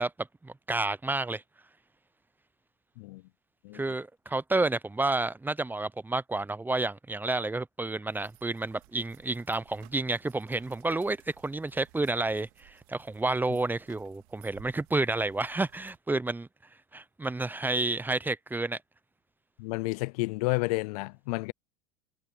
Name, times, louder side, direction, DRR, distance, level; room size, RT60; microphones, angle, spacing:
voice 1, 0.0-1.4 3.7-11.2 11.4-16.5 16.9-18.8, right 2 dB, 10° right, 0.9 m, -30 dB
sound 1, 8.1-16.0, right 28 dB, 65° right, 4.3 m, -59 dB
voice 2, 19.6-21.5, left 25 dB, 70° left, 0.5 m, -30 dB
hypercardioid pair, 90°, 20 cm